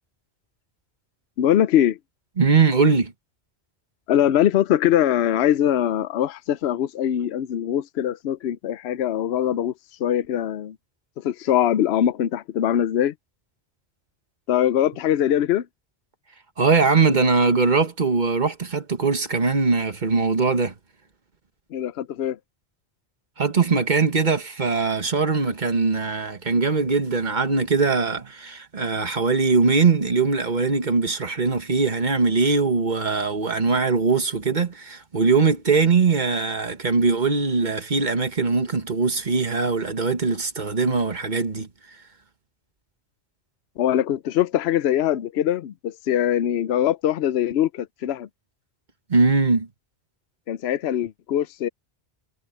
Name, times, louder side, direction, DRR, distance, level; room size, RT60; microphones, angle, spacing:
voice 1, 1.4-2.0 4.1-9.7 10.0-10.8 11.2-13.1 14.5-15.7 21.7-22.4 43.8-48.3 50.5-51.7, left 11 dB, 75° left, 0.9 m, -22 dB
voice 2, 2.4-3.1 16.6-20.7 23.4-41.7 49.1-49.7, right 4 dB, 45° right, 1.6 m, -21 dB
omnidirectional pair, 1.1 m